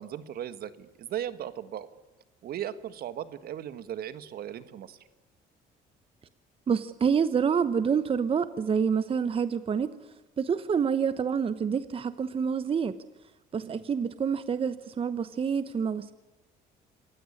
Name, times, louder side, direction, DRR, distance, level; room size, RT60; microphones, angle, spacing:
voice 1, 0.0-1.9 2.4-5.0 13.6-13.8, right 10 dB, 65° right, 13 dB, 1.6 m, -37 dB
voice 2, 6.7-9.9 10.4-12.9 13.5-16.1, right 6 dB, 35° right, 14 dB, 1.0 m, -27 dB
27.0 x 15.5 x 9.9 m, 1.1 s
cardioid pair, 110°, 17 cm